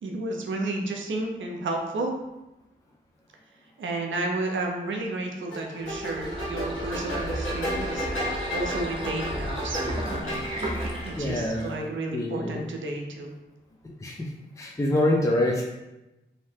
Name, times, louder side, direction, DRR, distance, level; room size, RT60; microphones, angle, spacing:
voice 1, 0.0-2.1 3.8-8.2 8.5-9.8 10.1-10.4 11.0-13.3, right 2 dB, 70° right, 2 dB, 0.6 m, -32 dB
sound 1, 5.5-11.2, equal, 75° left, 1.1 m, -33 dB
sound 2, 5.8-11.9, equal, 25° right, 0.7 m, -34 dB
voice 2, 11.2-11.7 12.1-12.6 14.0-14.3 14.6-15.6, left 1 dB, 15° left, -1 dB, 0.4 m, -25 dB
2.7 x 2.0 x 3.3 m, 0.99 s
supercardioid pair, 40°, 21 cm